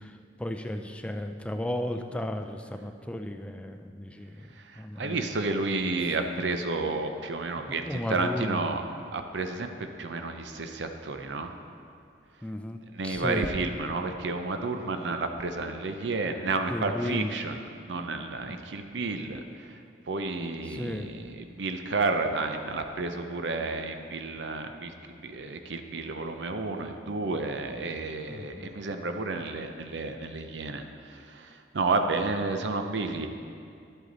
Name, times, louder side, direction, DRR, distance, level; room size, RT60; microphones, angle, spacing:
voice 1, 0.0-4.5 4.8-5.2 7.6-8.7 12.4-13.5 16.7-17.3 18.5-18.6 20.7-21.1 28.3-28.7, left 1 dB, 5° left, 6 dB, 0.4 m, -35 dB
voice 2, 4.7-8.8 9.1-11.5 12.9-17.5 17.9-19.4 20.1-33.3, right 3 dB, 80° right, 6 dB, 0.6 m, -31 dB
11.0 x 8.1 x 4.0 m, 2.4 s
head